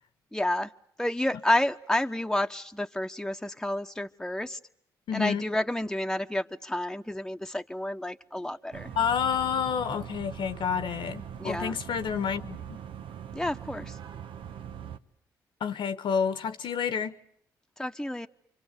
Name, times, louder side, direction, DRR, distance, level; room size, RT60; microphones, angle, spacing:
voice 1, 0.3-0.7 1.0-4.6 5.1-8.9 11.4-11.8 13.3-14.0 17.8-18.3, left 1 dB, 5° left, 1.1 m, -30 dB
voice 2, 5.1-5.4 9.0-12.8 15.6-17.1, left 7 dB, 65° left, 1.3 m, -29 dB
sound 1, 8.7-15.0, right 9 dB, 70° right, 1.2 m, -41 dB
29.0 x 24.5 x 8.3 m
supercardioid pair, 50°, 9 cm